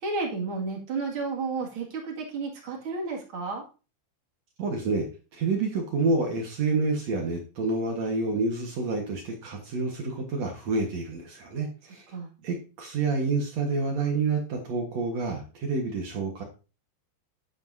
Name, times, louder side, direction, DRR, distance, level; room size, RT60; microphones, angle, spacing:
voice 1, 0.0-3.6 12.1-12.3, right 4 dB, 40° right, -1 dB, 2.0 m, -32 dB
voice 2, 4.6-5.1 5.3-12.0 12.4-16.4, right 3 dB, 70° right, 2 dB, 1.6 m, -28 dB
10.0 x 8.9 x 2.7 m, 0.33 s
omnidirectional pair, 5.1 m